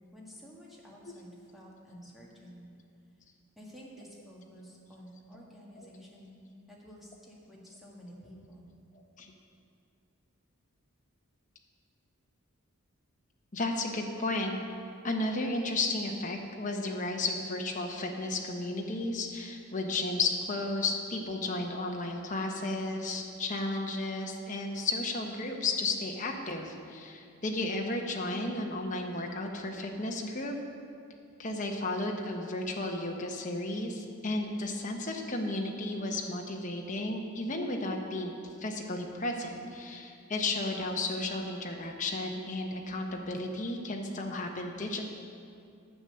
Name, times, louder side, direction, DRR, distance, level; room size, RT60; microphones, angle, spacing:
voice 1, 0.0-2.6 3.6-6.4 6.7-8.7, equal, ahead, -5 dB, 1.8 m, -51 dB
voice 2, 13.5-14.6 15.0-30.5 31.4-38.3 38.6-45.1, left 2 dB, 35° left, 2 dB, 1.1 m, -33 dB
10.0 x 7.7 x 6.8 m, 2.4 s
head